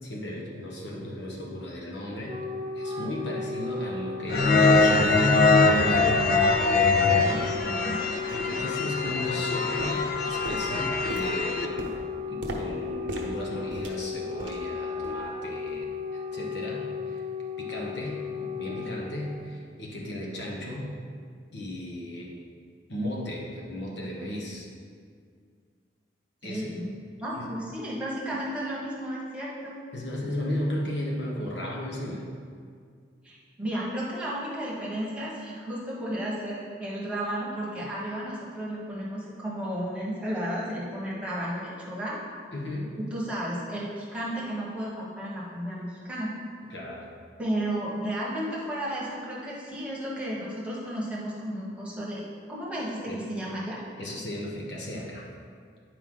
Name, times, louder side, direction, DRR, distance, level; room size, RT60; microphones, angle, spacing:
voice 1, 0.0-2.4 2.7-5.4 8.3-11.9 12.3-17.2 17.6-20.9 21.5-22.3 22.9-24.7 26.4-26.7 27.4-27.5 29.9-32.2 42.5-42.9 46.7-47.0 53.1-53.2 54.0-55.3, left 1 dB, 70° left, -3 dB, 1.2 m, -35 dB
Wind instrument woodwind instrument, 2.0-19.5, left 5 dB, 25° right, 0.5 m, -35 dB
sound 1, 4.3-11.6, left 3 dB, 50° left, 0.5 m, -23 dB
sound 2, 6.4-6.5 7.1-7.2 7.7-7.9 8.4-8.7 9.1-9.5 9.8-14.7 15.0-15.3 15.7-15.9 16.4-16.5, right 2 dB, 85° right, 0.9 m, -39 dB
voice 2, 7.1-8.0 26.4-26.9 27.2-29.8 33.2-42.2 43.0-46.3 47.4-52.2 52.5-53.8, right 1 dB, 5° right, -7 dB, 1.3 m, -33 dB
9.2 x 4.6 x 3.8 m, 2.1 s
head